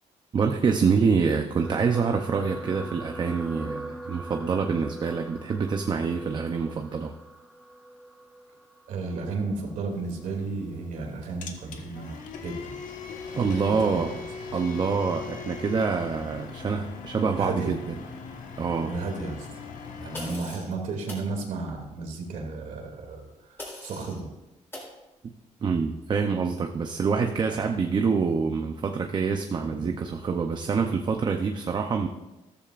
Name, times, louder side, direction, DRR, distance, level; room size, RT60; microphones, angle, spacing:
voice 1, 0.3-7.1 13.3-14.1 14.5-18.0 18.6-18.9 25.6-32.1, right 5 dB, 35° right, 4 dB, 0.7 m, -26 dB
sound 1, 1.6-10.1 10.8-11.1 11.3-11.4, right 1 dB, ahead, 0.8 m, -41 dB
voice 2, 8.9-12.8 13.4-14.2 17.2-17.7 18.8-19.5 20.0-24.3 27.4-27.6 29.7-29.9, right 3 dB, 90° right, 1 dB, 2.6 m, -34 dB
sound 2, 9.9-20.4, left 5 dB, 90° left, 1.4 m, -40 dB
sound 3, 20.1-20.7 21.1-21.3 23.6-24.2 24.7-24.9, left 1 dB, 15° left, 3.7 m, -40 dB
14.5 x 13.5 x 2.5 m, 1.0 s
cardioid pair, 150°, 13 cm